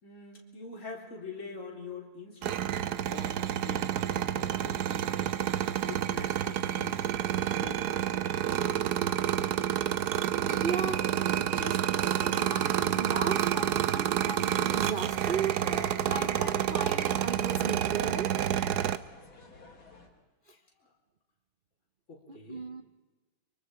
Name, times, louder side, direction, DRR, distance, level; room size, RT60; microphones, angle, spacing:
voice 1, 0.0-2.6 3.1-5.5 5.9-7.0 7.5-8.2 8.5-8.9 20.8-20.9 22.1-22.7, left 4 dB, 35° left, 0 dB, 4.1 m, -45 dB
sound 1, 2.4-19.0, right 10 dB, 60° right, 1.2 m, -29 dB
voice 2, 10.5-18.4 20.5-20.6 22.3-22.8, right 5 dB, 80° right, 9 dB, 0.4 m, -36 dB
sound 2, 14.8-20.1, left 3 dB, 70° left, 4.1 m, -50 dB
25.0 x 24.0 x 5.0 m, 1.2 s
omnidirectional pair, 2.2 m